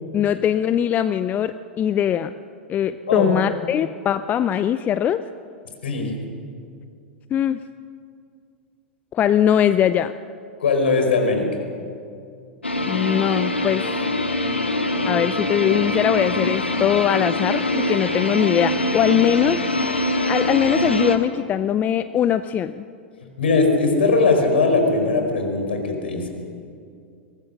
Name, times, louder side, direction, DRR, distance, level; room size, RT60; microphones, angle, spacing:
voice 1, 0.1-2.3 2.7-5.2 7.3-7.6 9.1-10.1 12.9-14.0 15.1-19.6 20.3-22.8, left 10 dB, 25° left, 13 dB, 0.6 m, -21 dB
voice 2, 5.8-6.1 10.6-11.5 23.2-26.3, left 3 dB, 70° left, 4 dB, 4.8 m, -20 dB
sound 1, 12.6-21.2, left 1 dB, 90° left, 1.7 m, -23 dB
22.5 x 20.5 x 6.5 m, 2.4 s
figure-of-eight pair, 95°, 6 cm